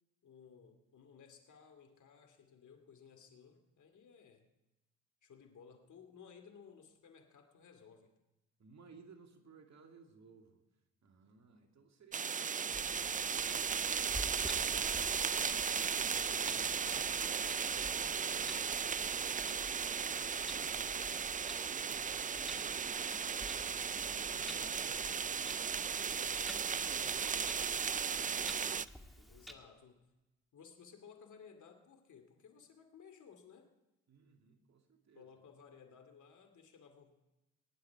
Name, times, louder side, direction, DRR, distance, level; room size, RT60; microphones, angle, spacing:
voice 1, 0.2-4.5 5.2-8.1 24.3-25.1 29.3-30.0 30.5-33.7 35.1-37.2, left 6 dB, 60° left, 6 dB, 2.5 m, -58 dB
voice 2, 8.6-10.6 11.0-13.0 13.3-17.3 17.9-21.3 21.7-23.2 24.0-26.4 26.7-28.2 29.1-29.5 34.1-35.3, right 5 dB, 50° right, 4 dB, 2.4 m, -62 dB
sound 1, 12.1-28.9, right 6 dB, 25° right, 0.4 m, -36 dB
Clock, 12.7-29.5, left 1 dB, ahead, 1.9 m, -51 dB
20.5 x 11.0 x 4.7 m, 1.0 s
supercardioid pair, 55°, 34 cm